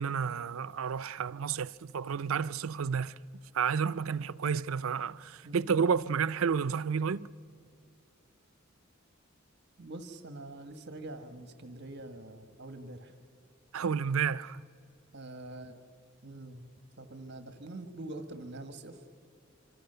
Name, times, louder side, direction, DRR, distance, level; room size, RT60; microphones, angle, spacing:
voice 1, 0.0-3.1 3.5-7.3 13.7-14.6, right 6 dB, 85° right, 0.5 m, -31 dB
voice 2, 9.8-13.1 15.1-15.8 16.2-16.7 17.0-19.0, right 2 dB, 55° right, 1.5 m, -44 dB
26.0 x 25.5 x 6.9 m
head